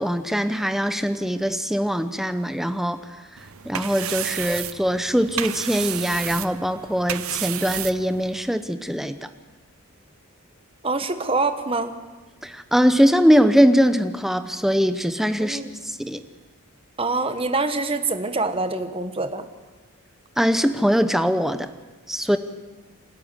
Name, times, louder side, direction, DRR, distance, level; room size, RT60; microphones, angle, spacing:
voice 1, 0.0-3.0 3.6-9.2 12.4-16.2 20.4-21.7 22.1-22.4, equal, ahead, 10 dB, 0.8 m, -21 dB
sound 1, 3.4-8.5, right 11 dB, 70° right, 0.8 m, -32 dB
voice 2, 10.8-11.9 15.4-15.7 17.0-19.5, right 3 dB, 25° right, 9 dB, 1.2 m, -25 dB
28.0 x 12.0 x 9.7 m, 1.3 s
head